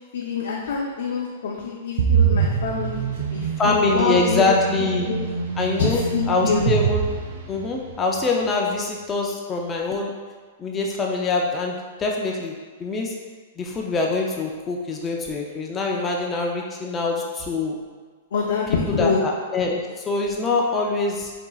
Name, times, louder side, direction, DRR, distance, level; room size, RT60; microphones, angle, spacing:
voice 1, 0.1-4.4 5.1-5.2 5.8-6.6 18.3-19.2, left 5 dB, 80° left, -3 dB, 0.6 m, -25 dB
sound 1, 2.0-7.9, right 6 dB, 70° right, 0.5 m, -24 dB
voice 2, 3.6-5.1 5.6-7.1 7.5-10.1 10.6-12.5 12.8-13.1 13.6-17.8 19.0-21.3, left 3 dB, 20° left, -1 dB, 0.5 m, -24 dB
6.3 x 2.8 x 2.3 m, 1.5 s
hypercardioid pair, 140°, 0 cm